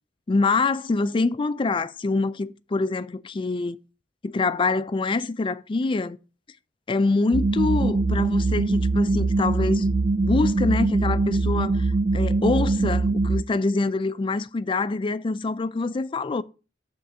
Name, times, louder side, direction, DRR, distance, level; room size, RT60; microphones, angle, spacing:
voice 1, 0.3-3.8 4.2-6.2 6.9-9.9 10.2-16.4, left 3 dB, 30° left, 0.4 m, -25 dB
sound 1, 7.3-13.4, right 3 dB, 50° right, 0.4 m, -22 dB
7.9 x 3.8 x 6.1 m
head